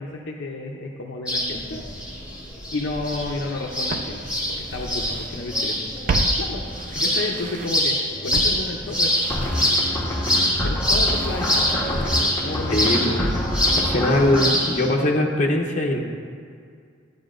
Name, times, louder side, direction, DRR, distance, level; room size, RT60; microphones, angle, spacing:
voice 1, 0.0-1.8 2.7-4.2 4.6-6.0 6.4-6.6 6.9-9.1 10.6-12.1 12.4-13.0, left 2 dB, 60° left, 0 dB, 0.6 m, -31 dB
sound 1, 1.3-14.9, left 1 dB, 5° right, 1.4 m, -25 dB
Walk footsteps, 3.2-3.3 3.9-5.4 5.7-7.9 8.3-12.4 12.6-12.7, right 3 dB, 40° right, 0.3 m, -33 dB
sound 2, 9.3-14.5, left 1 dB, 15° left, 1.1 m, -26 dB
voice 2, 12.7-13.5 13.8-16.0, left 1 dB, 40° left, 0 dB, 0.8 m, -21 dB
11.0 x 9.1 x 2.5 m, 2.2 s
head